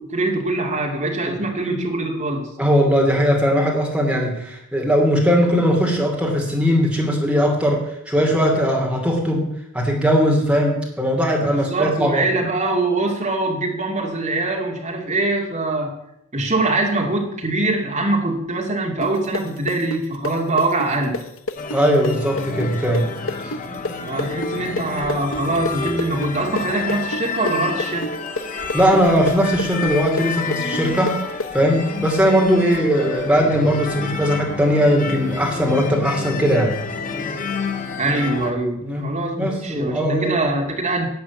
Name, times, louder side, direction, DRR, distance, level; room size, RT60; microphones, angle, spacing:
voice 1, 0.0-2.5 11.5-15.9 16.3-21.2 24.0-28.1 38.0-41.1, right 2 dB, 35° right, 1 dB, 2.5 m, -23 dB
voice 2, 2.6-12.2 21.7-23.1 23.4-23.5 28.7-31.2 31.5-36.8 38.8-39.1 39.4-40.3, equal, 5° right, -1 dB, 2.9 m, -19 dB
sound 1, 19.0-26.6 26.9-31.5, left 2 dB, 70° left, 0.9 m, -28 dB
sound 2, 21.6-38.5, left 4 dB, 40° left, 1.4 m, -30 dB
11.5 x 7.9 x 8.4 m, 0.77 s
head